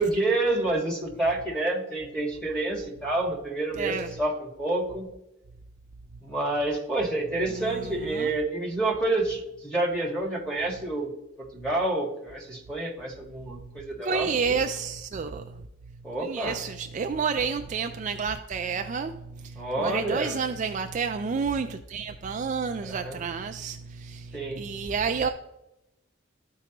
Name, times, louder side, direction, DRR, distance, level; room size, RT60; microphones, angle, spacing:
voice 1, 0.0-5.1 6.2-11.1 11.4-14.6 16.0-16.6 19.5-20.4 22.9-23.2 24.3-24.6, right 2 dB, 5° left, -5 dB, 1.7 m, -28 dB
voice 2, 3.7-4.1 7.5-8.3 14.0-15.6 16.2-25.3, right 5 dB, 40° right, 6 dB, 0.3 m, -30 dB
13.0 x 4.6 x 3.0 m, 0.90 s
head